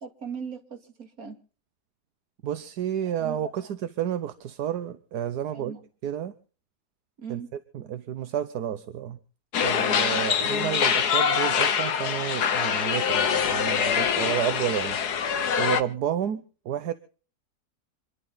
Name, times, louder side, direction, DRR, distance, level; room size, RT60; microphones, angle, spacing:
voice 1, 0.0-1.4 3.2-3.4 5.5-5.8 7.2-7.5, right 6 dB, 60° right, 2.7 m, -38 dB
voice 2, 2.4-5.7 6.0-6.3 7.3-9.2 9.6-15.0 15.6-16.9, right 10 dB, 80° right, 1.5 m, -31 dB
sound 1, 9.5-15.8, left 7 dB, 80° left, 1.8 m, -24 dB
27.5 x 11.5 x 3.9 m
omnidirectional pair, 1.7 m